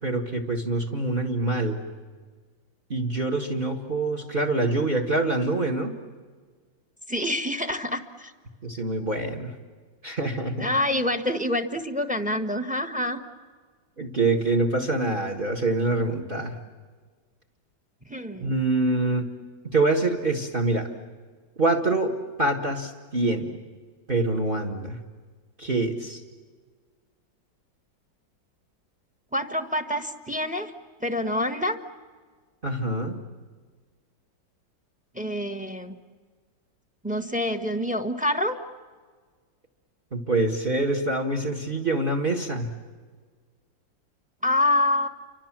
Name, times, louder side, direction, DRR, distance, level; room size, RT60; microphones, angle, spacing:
voice 1, 0.0-1.8 2.9-5.9 8.6-9.5 10.0-10.7 14.0-16.6 18.4-19.3 19.7-20.9 21.6-22.1 22.4-23.6 24.1-25.0 25.6-26.2 32.6-33.2 40.1-42.7, right 2 dB, 30° right, 5 dB, 1.9 m, -25 dB
voice 2, 7.1-8.3 10.6-13.2 18.1-18.5 29.3-30.7 31.0-31.8 35.1-36.0 37.0-38.6 44.4-45.1, left 1 dB, 5° right, 8 dB, 1.1 m, -26 dB
29.5 x 25.0 x 7.5 m, 1.5 s
omnidirectional pair, 2.0 m